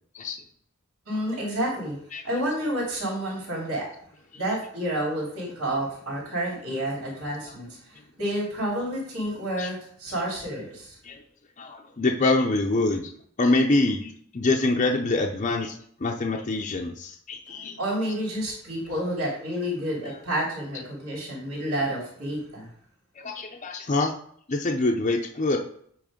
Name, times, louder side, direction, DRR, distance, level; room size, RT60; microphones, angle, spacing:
voice 1, 1.0-2.0 2.2-3.9 4.3-11.0 17.8-22.7, right 1 dB, 80° right, -4 dB, 3.2 m, -29 dB
voice 2, 11.6-13.1 13.4-15.7 16.0-17.8 23.2-24.1 24.5-25.6, left 2 dB, 35° left, 1 dB, 0.5 m, -25 dB
8.8 x 3.1 x 5.0 m, 0.63 s
head